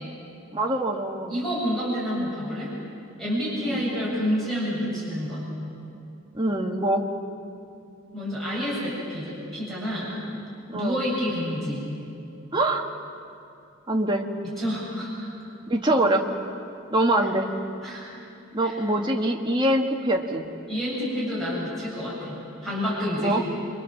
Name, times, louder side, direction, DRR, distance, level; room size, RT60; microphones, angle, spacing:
voice 1, 0.5-1.3 3.6-3.8 6.3-7.1 10.7-11.0 12.5-12.9 13.9-14.3 15.7-16.3 16.9-17.5 18.5-20.5 23.2-23.4, right 1 dB, 20° right, 2 dB, 1.5 m, -24 dB
voice 2, 1.3-2.7 3.2-5.4 8.1-10.2 10.7-11.9 14.6-15.3 17.8-18.0 18.6-18.8 20.7-22.4 22.6-23.4, equal, ahead, -9 dB, 7.6 m, -28 dB
27.5 x 24.5 x 7.4 m, 2.7 s
head